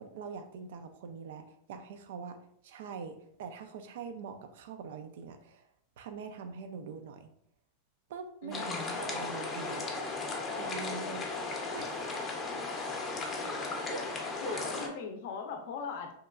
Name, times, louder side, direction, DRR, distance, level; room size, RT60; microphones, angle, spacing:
voice 1, 0.0-2.4 2.6-5.7 6.0-7.3 8.1-9.9 10.6-11.2 11.7-12.2 13.9-14.6, right 5 dB, 75° right, 8 dB, 0.3 m, -43 dB
voice 2, 8.4-9.0 14.4-16.1, left 5 dB, 65° left, 5 dB, 0.5 m, -39 dB
sound 1, 8.5-14.9, left 3 dB, 20° left, 0.6 m, -36 dB
2.9 x 2.2 x 2.3 m, 0.69 s
supercardioid pair, 125°, 0 cm